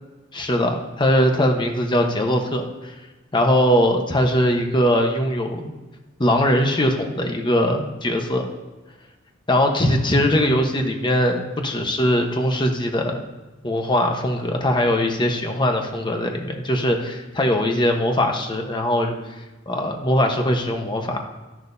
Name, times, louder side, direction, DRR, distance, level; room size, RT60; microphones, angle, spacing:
voice 1, 0.3-2.9 3.3-5.7 6.2-8.5 9.5-13.2 13.6-19.1 19.7-21.2, left 1 dB, 25° left, 3 dB, 1.1 m, -21 dB
12.0 x 11.0 x 2.7 m, 1.2 s
head